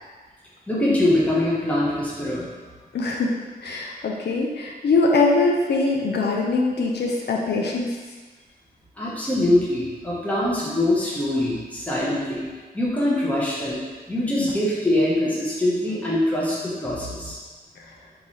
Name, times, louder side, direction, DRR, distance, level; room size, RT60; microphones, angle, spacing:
voice 1, 0.7-2.5 9.0-12.5 12.7-13.8 14.1-17.4, left 1 dB, 10° left, -7 dB, 0.9 m, -23 dB
voice 2, 2.9-3.3 3.6-8.0, left 3 dB, 85° left, 0 dB, 0.5 m, -22 dB
3.8 x 2.6 x 3.1 m, 1.4 s
wide cardioid pair, 130°, 17 cm